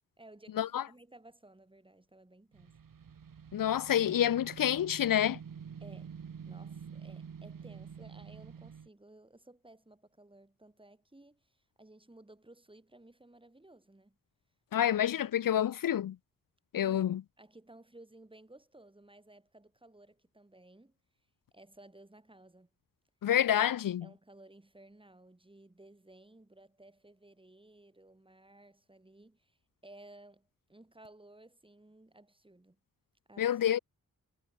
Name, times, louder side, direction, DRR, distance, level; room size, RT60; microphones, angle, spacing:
voice 1, 0.2-2.8 5.8-14.2 14.8-15.6 16.7-21.0 21.5-22.7 23.6-23.7 24.0-32.8 33.3-33.6, right 1 dB, 15° right, 6.6 m, -57 dB
sound 1, 2.5-8.9, right 7 dB, 70° right, 4.6 m, -47 dB
voice 2, 3.5-5.4 14.7-16.2 16.7-17.2 23.2-24.0 33.4-33.8, left 10 dB, 70° left, 0.6 m, -28 dB
wide cardioid pair, 110°, 34 cm